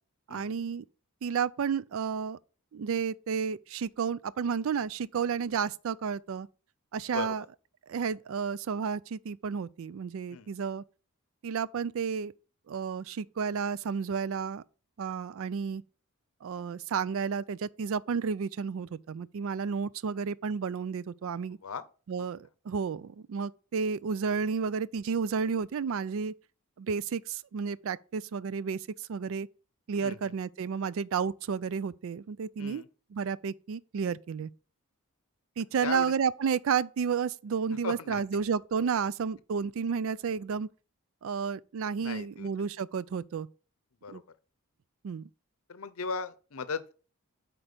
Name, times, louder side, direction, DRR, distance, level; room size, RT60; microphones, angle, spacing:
voice 1, 0.3-0.8 1.2-2.4 2.7-6.5 6.9-7.4 7.9-10.8 11.4-12.3 12.7-14.6 15.0-15.8 16.4-21.6 22.1-26.3 26.8-29.5 29.9-32.8 33.1-34.5 35.6-40.7 41.2-43.5 44.1-44.2 45.0-45.3, right 6 dB, 65° right, 0.4 m, -31 dB
voice 2, 30.0-30.3 32.6-32.9 35.8-36.1 37.8-38.2 42.0-42.5 44.0-44.2 45.7-46.9, left 5 dB, 65° left, 0.7 m, -37 dB
8.1 x 4.5 x 5.0 m
head